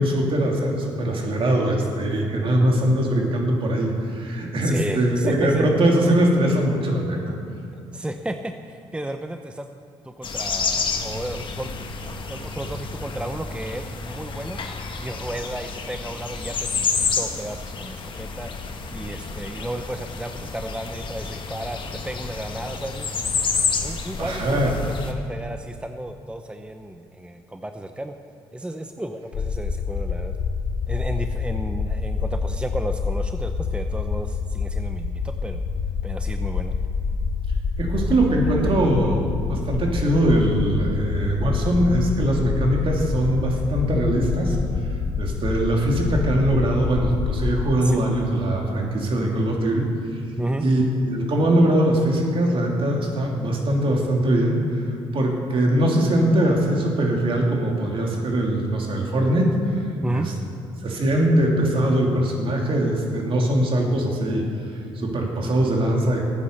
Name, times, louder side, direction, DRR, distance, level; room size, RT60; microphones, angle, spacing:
voice 1, 0.0-7.3 24.2-24.7 37.8-39.2 39.5-44.6 44.9-49.9 50.6-54.8 55.1-59.8 60.1-60.3 60.8-66.3, right 1 dB, 50° right, 0 dB, 2.8 m, -21 dB
voice 2, 4.6-5.7 7.7-9.7 10.0-11.7 12.3-14.6 15.0-18.5 18.9-21.8 22.0-23.1 23.8-28.1 28.5-30.4 30.9-35.6 36.0-36.7 38.1-39.4 47.8-48.0 50.4-50.7 60.0-60.3, right 1 dB, 10° right, 7 dB, 0.7 m, -33 dB
sound 1, 10.2-25.1, left 5 dB, 45° left, 1.5 m, -29 dB
sound 2, 29.3-47.7, left 5 dB, 65° left, 1.0 m, -27 dB
13.5 x 9.5 x 6.6 m, 2.4 s
supercardioid pair, 60°, 11 cm